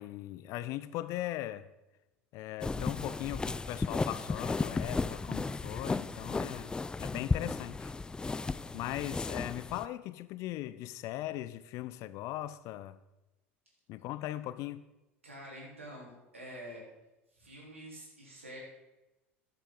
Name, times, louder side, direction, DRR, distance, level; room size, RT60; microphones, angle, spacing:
voice 1, 0.0-1.7 2.3-7.9 8.7-13.0 13.9-14.8, left 14 dB, 50° left, 0.7 m, -39 dB
sound 1, 2.6-9.9, left 3 dB, 10° left, 0.4 m, -34 dB
voice 2, 15.2-16.8 17.3-18.6, equal, 85° right, 3.9 m, -47 dB
13.0 x 11.0 x 3.9 m
figure-of-eight pair, 75°, 7 cm